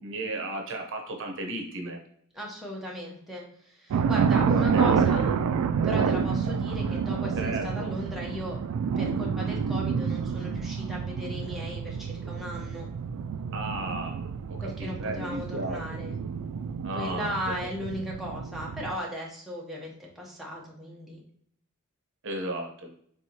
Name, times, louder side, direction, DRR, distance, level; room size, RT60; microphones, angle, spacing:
voice 1, 0.0-2.0 4.3-5.0 7.4-7.9 13.5-16.0 16.8-17.7 22.2-22.9, right 2 dB, 60° right, 3 dB, 0.8 m, -35 dB
voice 2, 2.3-5.3 5.8-8.6 9.0-12.9 14.6-16.1 16.9-21.2, left 1 dB, ahead, -4 dB, 0.9 m, -36 dB
sound 1, 3.9-19.0, right 6 dB, 85° right, 0.3 m, -28 dB
4.6 x 3.7 x 2.8 m, 0.65 s
head